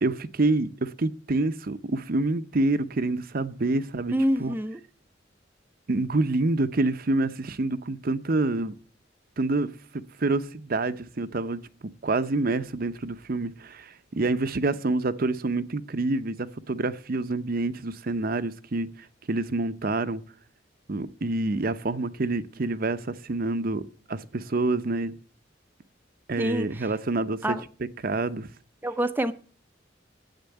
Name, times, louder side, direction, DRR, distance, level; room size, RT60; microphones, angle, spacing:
voice 1, 0.0-4.5 5.9-8.7 9.4-11.6 12.0-18.9 19.3-20.2 20.9-25.2 26.3-27.6 28.0-28.5, right 2 dB, 50° right, 0.7 m, -27 dB
voice 2, 4.1-4.8 26.4-26.9 27.4-27.6 28.8-29.3, equal, 10° right, 0.6 m, -26 dB
10.5 x 8.2 x 7.9 m
head